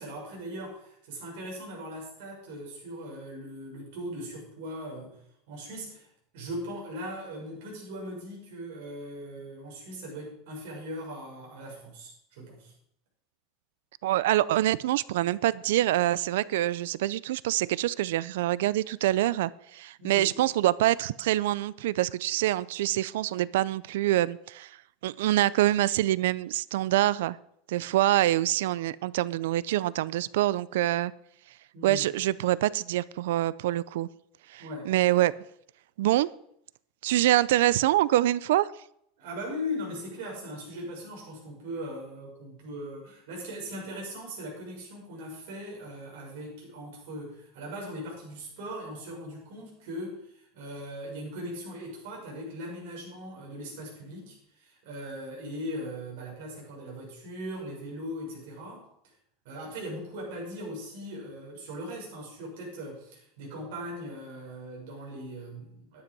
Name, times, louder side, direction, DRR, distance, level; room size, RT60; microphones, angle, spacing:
voice 1, 0.0-5.2 5.5-6.1 6.3-12.7 20.0-20.3 31.7-32.1 34.6-34.9 39.2-58.8 59.4-66.0, equal, 65° right, 6.2 m, -39 dB
voice 2, 14.0-24.8 25.0-27.4 27.7-31.1 31.8-34.1 34.5-35.3 36.0-36.3 37.0-38.7, right 14 dB, 80° right, 0.4 m, -25 dB
12.0 x 9.7 x 5.4 m
supercardioid pair, 175°, 0 cm